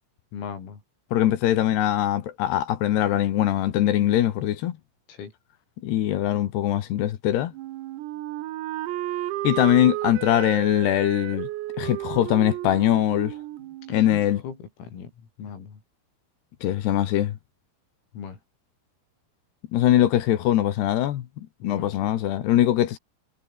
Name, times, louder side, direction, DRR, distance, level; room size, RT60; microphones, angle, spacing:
voice 1, 0.3-0.8 5.2-5.3 14.1-14.5 14.8-15.1 15.4-15.7 18.2-18.4 21.6-21.9, left 7 dB, 90° left, 8.3 m, -37 dB
voice 2, 1.1-4.8 5.8-7.5 9.4-11.5 11.8-13.4 13.9-14.4 16.6-17.4 19.7-21.3 21.6-23.0, left 12 dB, 65° left, 3.1 m, -22 dB
Wind instrument woodwind instrument, 7.5-14.4, right 15 dB, 85° right, 4.2 m, -33 dB
omnidirectional pair, 6.0 m